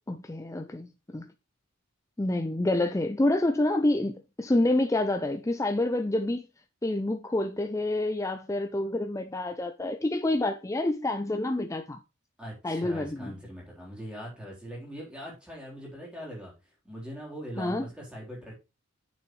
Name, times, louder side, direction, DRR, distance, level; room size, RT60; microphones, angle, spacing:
voice 1, 0.1-1.3 2.2-6.5 6.8-12.0 12.6-13.3 17.6-17.9, left 1 dB, 15° left, 0.4 m, -28 dB
voice 2, 12.4-18.5, equal, 5° right, 3.8 m, -41 dB
8.8 x 7.0 x 3.2 m
head